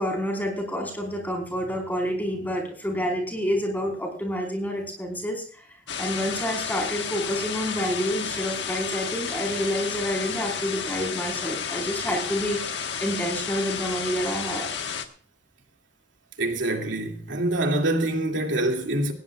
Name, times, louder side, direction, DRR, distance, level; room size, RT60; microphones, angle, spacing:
voice 1, 0.0-5.7 6.0-14.7, equal, 10° left, 4.5 m, -28 dB
sound 1, 5.9-15.1, left 7 dB, 65° left, 1.4 m, -32 dB
voice 2, 16.4-19.1, right 1 dB, 80° right, 2.4 m, -25 dB
19.5 x 16.5 x 2.4 m
head